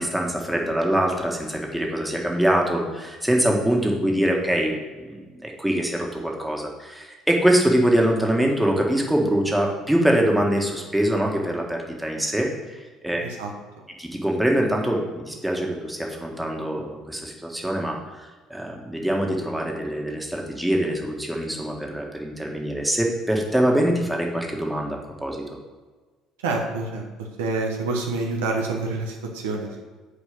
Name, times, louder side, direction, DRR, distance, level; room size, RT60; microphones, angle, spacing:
voice 1, 0.0-4.8 5.0-13.2 14.0-25.4, right 1 dB, 5° right, 0 dB, 1.7 m, -24 dB
voice 2, 13.2-13.5 26.4-27.0 27.4-29.9, right 3 dB, 80° right, 1 dB, 1.0 m, -27 dB
6.8 x 4.4 x 6.8 m, 1.3 s
hypercardioid pair, 60°, 0 cm